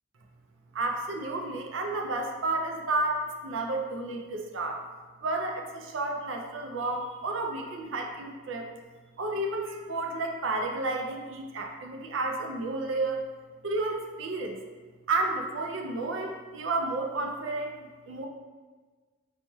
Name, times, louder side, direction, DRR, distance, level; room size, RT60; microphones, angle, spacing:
voice 1, 0.7-4.8 5.2-8.7 9.2-13.3 13.6-14.6 15.1-18.3, right 2 dB, 70° right, 2 dB, 0.4 m, -31 dB
4.1 x 3.0 x 2.3 m, 1.4 s
head